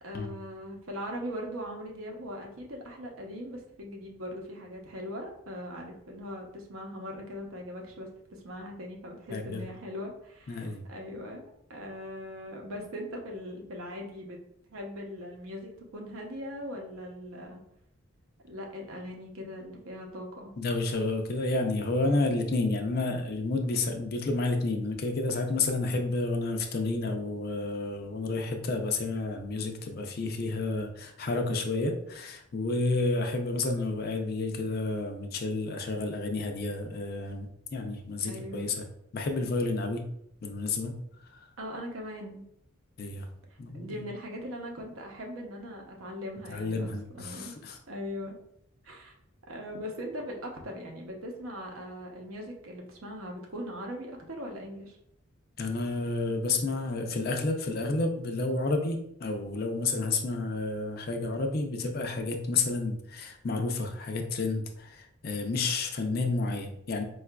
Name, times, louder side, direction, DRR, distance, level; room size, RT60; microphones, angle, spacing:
voice 1, 0.0-11.4 11.7-14.4 14.7-17.6 18.4-20.5 38.2-38.7 41.6-42.4 43.7-47.5 47.9-48.4 48.8-49.1 49.5-55.0, equal, 80° right, 1 dB, 0.7 m, -40 dB
voice 2, 9.3-9.6 10.5-10.8 20.6-38.9 39.1-40.0 40.4-41.0 41.2-41.5 43.0-43.3 43.6-44.0 46.5-47.8 55.6-67.0, left 3 dB, 45° left, 4 dB, 0.4 m, -30 dB
4.7 x 2.4 x 2.2 m, 0.74 s
head